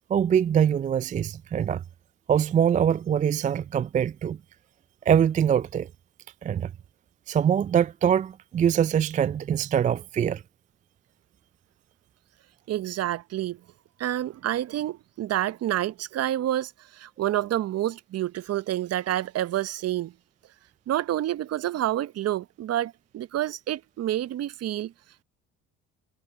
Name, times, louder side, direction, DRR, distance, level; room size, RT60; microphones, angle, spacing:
voice 1, 0.1-1.8 2.3-4.4 5.1-5.9 6.4-6.7 7.3-10.4, right 8 dB, 25° right, 0.3 m, -23 dB
voice 2, 12.7-13.6 14.0-20.1 20.9-24.9, right 13 dB, 50° right, 0.9 m, -28 dB
hypercardioid pair, 65°, 31 cm